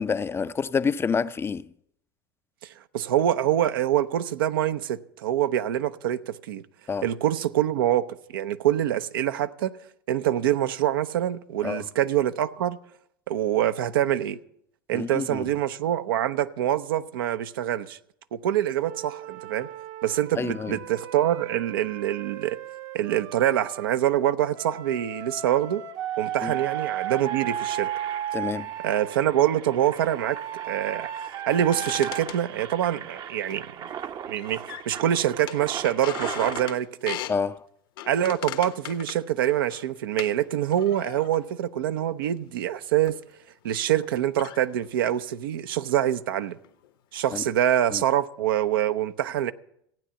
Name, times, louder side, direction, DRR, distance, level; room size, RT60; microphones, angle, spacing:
voice 1, 0.0-1.7 6.9-7.1 11.6-11.9 14.9-15.4 20.4-20.8 26.4-26.5 28.3-28.7 37.3-37.6 47.3-47.4 47.9-48.0, left 5 dB, 20° left, 0.5 m, -28 dB
voice 2, 2.9-6.6 7.0-8.1 8.3-9.8 10.1-12.8 13.3-14.4 14.9-18.0 18.3-19.7 20.0-22.6 22.9-25.8 26.2-27.9 28.8-30.4 30.6-31.1 31.5-33.7 34.3-37.2 38.1-43.2 43.6-46.6 47.1-49.5, right 11 dB, 80° right, 0.7 m, -25 dB
Wind instrument woodwind instrument, 18.8-23.9 24.5-29.2 30.0-32.2, right 11 dB, 60° right, 1.1 m, -35 dB
Engine, 25.0-25.1 25.3-25.5 26.0-36.7, right 8 dB, 40° right, 0.7 m, -40 dB
wood bathroom door creaks medium, 31.5-33.0 33.5-34.1 34.3-35.1 35.5-37.4 38.0-40.3 40.7-41.5 42.2-42.4 43.1-43.2 44.0-44.1 44.4-45.3 45.9-46.1 46.4-46.9 47.2-47.7, left 12 dB, 70° left, 1.2 m, -39 dB
15.0 x 9.0 x 7.0 m
hypercardioid pair, 85°, 12 cm